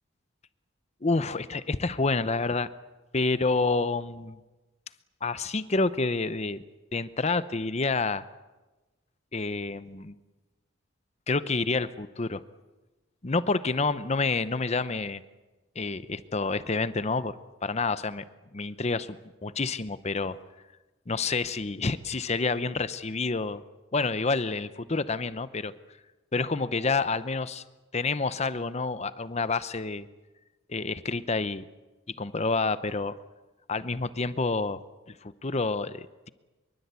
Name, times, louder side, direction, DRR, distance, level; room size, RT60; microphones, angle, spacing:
voice 1, 1.0-2.7 3.1-4.4 5.2-6.6 6.9-8.2 9.3-10.1 11.3-12.4 13.2-15.2 15.8-17.4 17.6-18.2 18.5-19.2 19.4-20.4 21.1-23.6 23.9-25.7 26.3-27.6 27.9-30.1 30.7-31.6 32.1-33.1 33.7-34.8 35.2-36.3, left 3 dB, 35° left, 14 dB, 0.8 m, -28 dB
24.5 x 23.5 x 8.3 m, 1.2 s
head